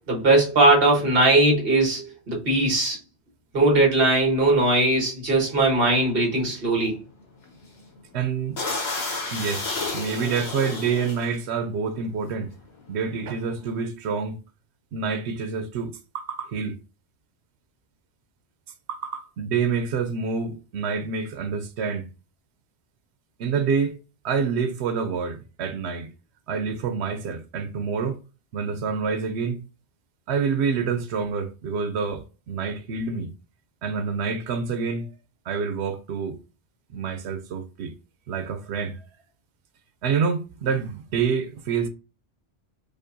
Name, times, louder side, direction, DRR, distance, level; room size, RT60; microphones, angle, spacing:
voice 1, 0.1-3.0 3.5-7.0, right 2 dB, 60° right, 1.4 m, -20 dB
sound 1, 5.8-5.9 6.3-6.5 6.7-6.9 7.4-7.8 8.1-8.2 8.5-11.4 12.1-12.3 12.6-13.8, left 3 dB, 75° left, 1.3 m, -31 dB
voice 2, 8.1-8.6 9.3-9.6 9.9-12.5 12.9-14.4 14.9-16.7 18.9-22.0 23.4-24.0 24.2-26.1 26.5-28.2 28.5-29.7 30.3-33.3 33.8-35.1 35.5-36.4 36.9-37.9 38.3-39.1 40.0-41.9, right 5 dB, 90° right, 0.9 m, -27 dB
5.1 x 2.1 x 2.6 m
omnidirectional pair, 1.1 m